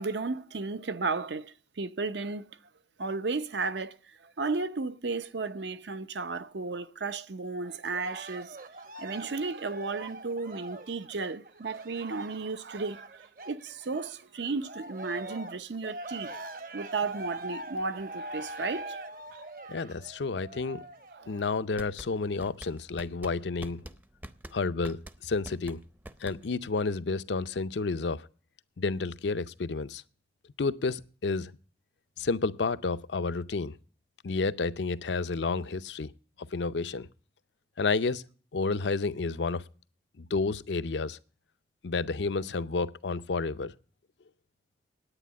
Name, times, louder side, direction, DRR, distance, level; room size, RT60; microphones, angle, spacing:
voice 1, 0.0-2.5 3.0-8.6 9.0-19.0 21.1-21.4, right 4 dB, 85° right, 0.7 m, -34 dB
Cheering, 7.9-14.2 14.6-21.2 21.8-21.9, right 2 dB, 50° right, 0.9 m, -43 dB
voice 2, 19.7-20.8 21.3-23.8 24.5-25.8 26.2-28.3 28.8-30.0 30.6-31.5 32.2-33.8 34.2-36.1 36.5-37.1 37.8-38.2 38.5-39.6 40.2-41.2 41.8-43.7, left 4 dB, 90° left, 0.6 m, -30 dB
sound 1, 21.8-26.7, right 1 dB, 10° right, 0.5 m, -46 dB
10.0 x 9.1 x 8.2 m
head